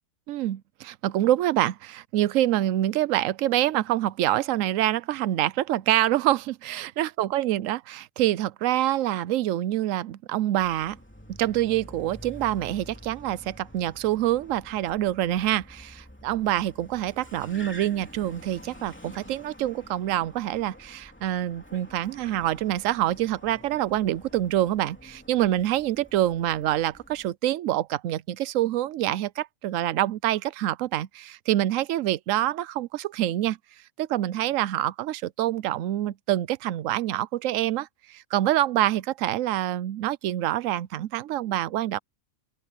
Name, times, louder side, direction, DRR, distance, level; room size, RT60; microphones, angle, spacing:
voice 1, 0.3-11.0 11.3-33.6 34.0-42.0, right 13 dB, 75° right, 1.0 m, -26 dB
Car, 10.6-27.3, equal, 10° left, 2.8 m, -48 dB
open air
omnidirectional pair, 1.4 m